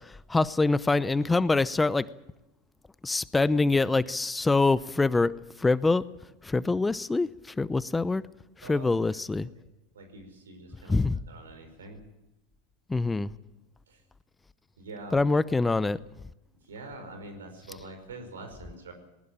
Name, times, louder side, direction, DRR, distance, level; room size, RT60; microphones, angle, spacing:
voice 1, 0.3-2.1 3.0-5.3 5.6-6.0 6.4-7.3 7.6-8.2 8.7-9.5 10.9-11.2 12.9-13.3 15.1-16.0, left 3 dB, 10° left, 17 dB, 0.7 m, -24 dB
voice 2, 8.6-9.2 9.9-11.0 11.3-12.0 13.9-14.0 14.8-15.2 16.5-18.9, right 2 dB, 85° right, 7 dB, 5.3 m, -45 dB
19.5 x 18.0 x 8.9 m, 0.93 s
hypercardioid pair, 95°, 0 cm